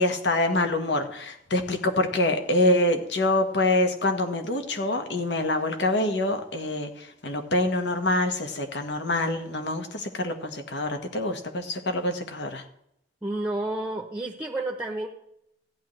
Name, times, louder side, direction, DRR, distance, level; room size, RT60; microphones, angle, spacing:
voice 1, 0.0-12.6, left 2 dB, 80° left, 5 dB, 1.5 m, -25 dB
voice 2, 13.2-15.1, right 2 dB, 10° right, 3 dB, 0.8 m, -30 dB
15.0 x 10.5 x 3.3 m, 0.76 s
head